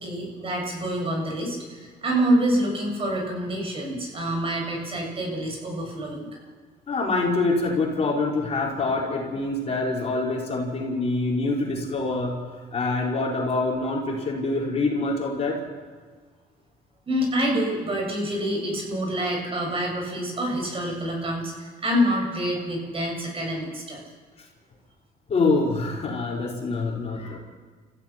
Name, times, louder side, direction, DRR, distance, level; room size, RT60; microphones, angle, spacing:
voice 1, 0.0-6.3 17.1-24.0, equal, 35° right, 0 dB, 7.4 m, -27 dB
voice 2, 6.9-12.4 12.7-15.6 25.3-27.4, left 3 dB, 40° left, -2 dB, 4.8 m, -25 dB
30.0 x 15.5 x 6.0 m, 1.5 s
cardioid pair, 110°, 17 cm